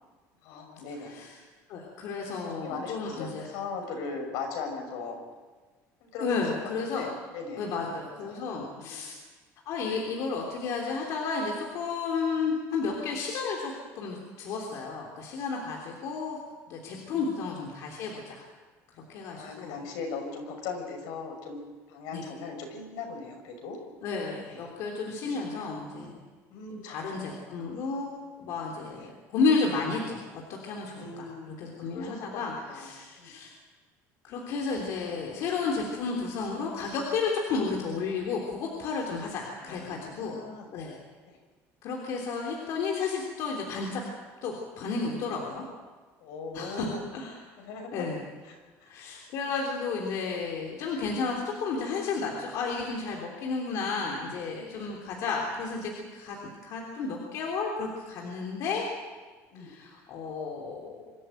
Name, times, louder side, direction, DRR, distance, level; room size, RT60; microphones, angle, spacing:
voice 1, 0.4-1.2 2.5-5.2 6.0-6.3 6.9-7.7 8.3-8.9 17.1-17.3 19.3-21.6 21.9-23.8 24.4-24.6 25.2-26.1 26.5-27.1 27.5-27.6 28.9-29.1 30.9-32.9 33.2-33.3 39.6-40.7 41.3-41.4 46.2-47.0 47.6-48.1 48.4-49.2 59.5-59.7, left 4 dB, 80° left, 3 dB, 6.2 m, -39 dB
voice 2, 1.0-1.4 1.7-3.5 6.2-7.1 7.6-9.1 9.6-16.4 16.7-18.4 19.1-19.8 22.1-22.2 24.0-26.2 26.8-33.5 34.2-40.4 40.7-41.0 41.8-44.0 44.4-45.6 46.5-47.4 47.9-48.2 48.9-56.4 56.6-58.8 59.6-61.1, left 4 dB, 55° left, 0 dB, 3.4 m, -32 dB
25.5 x 14.0 x 9.1 m, 1.4 s
cardioid pair, 170°, 6 cm